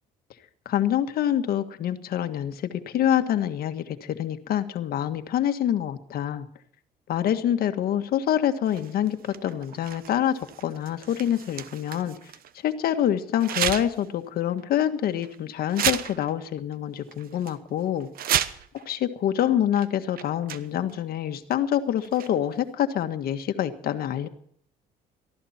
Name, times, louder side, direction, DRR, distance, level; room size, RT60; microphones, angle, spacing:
voice 1, 0.6-6.5 7.1-12.1 12.6-18.1 18.7-24.3, left 10 dB, 65° left, 8 dB, 1.7 m, -26 dB
sound 1, 8.6-12.5 13.4-14.1 14.5-14.6 15.2-15.4 15.7-16.5 16.7-16.8 17.1-17.5 18.0-18.8 19.7-19.9 20.1-20.9 22.0-22.6, right 10 dB, 60° right, 1.1 m, -32 dB
19.0 x 14.0 x 4.4 m, 0.64 s
cardioid pair, 110°, 17 cm